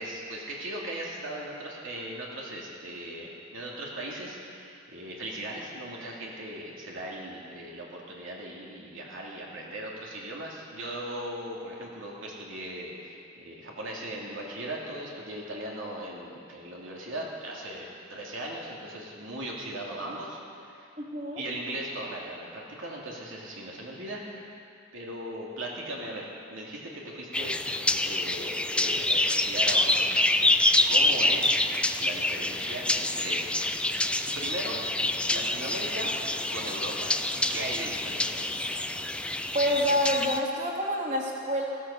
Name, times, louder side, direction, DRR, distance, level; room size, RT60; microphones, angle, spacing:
voice 1, 0.0-20.9 21.4-24.5 24.9-27.5 28.0-31.7 32.0-33.6 34.3-34.8 35.3-36.1 36.5-37.1 37.5-38.6, right 1 dB, 80° right, -3 dB, 2.8 m, -38 dB
voice 2, 21.0-21.4 39.5-41.6, equal, 40° right, -3 dB, 2.8 m, -27 dB
sound 1, 27.3-40.4, left 2 dB, 5° left, 0.5 m, -27 dB
15.5 x 13.0 x 7.1 m, 2.4 s
head